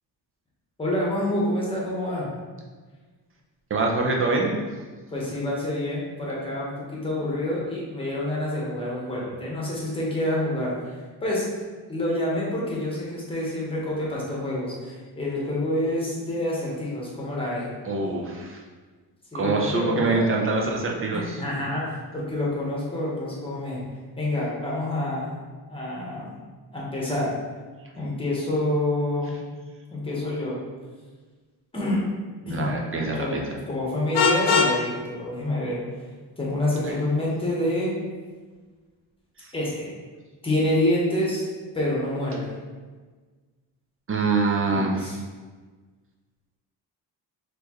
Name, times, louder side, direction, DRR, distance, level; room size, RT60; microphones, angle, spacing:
voice 1, 0.8-2.3 5.1-10.7 11.2-11.5 11.9-17.7 19.3-20.3 21.1-23.8 24.2-25.3 25.7-26.3 26.7-27.3 27.9-29.4 29.9-30.6 31.7-32.0 32.4-32.7 33.2-33.4 33.7-35.8 36.4-37.9 39.5-39.9 40.4-41.5 41.7-42.5 44.7-45.2, left 1 dB, 15° left, -5 dB, 1.0 m, -27 dB
voice 2, 3.7-4.6 17.8-18.6 19.3-21.4 32.5-33.4 36.9-37.0 39.4-39.5 44.1-45.2, right 3 dB, 30° right, 0 dB, 0.5 m, -25 dB
Vehicle horn car horn honking, 34.1-34.8, left 5 dB, 70° left, 0.6 m, -20 dB
4.3 x 3.2 x 3.0 m, 1.4 s
cardioid pair, 150°, 41 cm